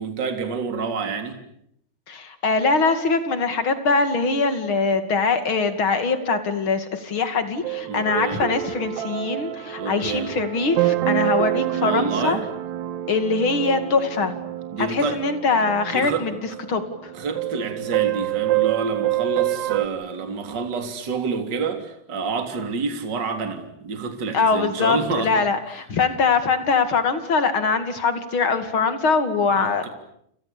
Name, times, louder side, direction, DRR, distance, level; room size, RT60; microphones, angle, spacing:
voice 1, 0.0-1.4 7.9-8.4 9.8-10.3 11.8-12.5 14.7-15.2 15.9-16.3 17.1-25.5 29.5-29.9, right 4 dB, 30° right, 6 dB, 3.4 m, -28 dB
voice 2, 2.1-12.4 13.1-14.3 14.8-16.3 16.7-17.1 24.3-29.9, left 4 dB, 35° left, 9 dB, 2.7 m, -22 dB
sound 1, 7.6-19.9, right 15 dB, 80° right, 3.3 m, -27 dB
29.5 x 29.0 x 6.9 m, 0.71 s
omnidirectional pair, 4.7 m